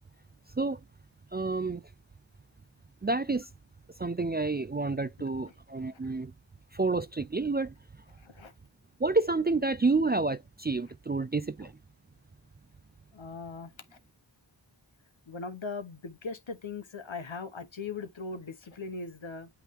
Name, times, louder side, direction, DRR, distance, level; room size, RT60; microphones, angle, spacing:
voice 1, 1.3-1.8 3.0-3.5 4.0-6.3 6.7-7.7 9.0-11.7, right 3 dB, 25° right, 0.3 m, -29 dB
voice 2, 8.2-8.5 11.6-11.7 13.1-14.0 15.3-19.5, left 4 dB, 80° left, 1.1 m, -40 dB
8.1 x 3.2 x 3.6 m
wide cardioid pair, 40°, 46 cm